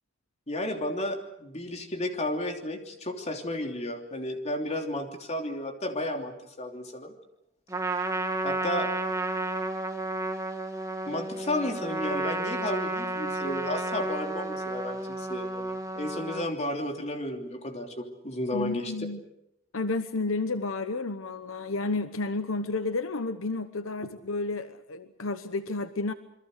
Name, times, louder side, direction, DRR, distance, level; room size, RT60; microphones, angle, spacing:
voice 1, 0.5-7.1 8.4-8.9 11.1-18.9, left 1 dB, 35° left, 3 dB, 3.2 m, -33 dB
Trumpet, 7.7-16.5, right 2 dB, 15° right, 2.4 m, -32 dB
voice 2, 18.5-19.2 19.7-26.1, left 3 dB, 75° left, 10 dB, 1.0 m, -31 dB
28.0 x 22.5 x 6.6 m, 0.81 s
head